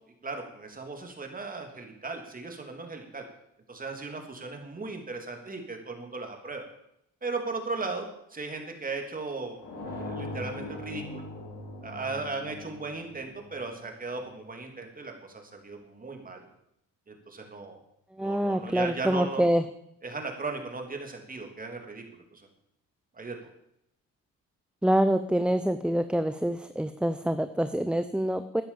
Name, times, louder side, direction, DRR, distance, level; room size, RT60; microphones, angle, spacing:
voice 1, 0.2-3.2 3.7-6.6 7.2-9.6 9.8-11.3 11.8-16.5 17.1-17.8 18.2-19.4 20.0-22.0 22.3-22.5 23.1-23.5, right 3 dB, 30° right, 4 dB, 3.2 m, -37 dB
sound 1, 9.6-14.3, left 2 dB, 75° left, 7.1 m, -40 dB
voice 2, 18.1-19.6 24.8-28.6, right 1 dB, 5° right, 10 dB, 0.7 m, -26 dB
13.0 x 10.0 x 7.2 m, 0.77 s
cardioid pair, 90°, 30 cm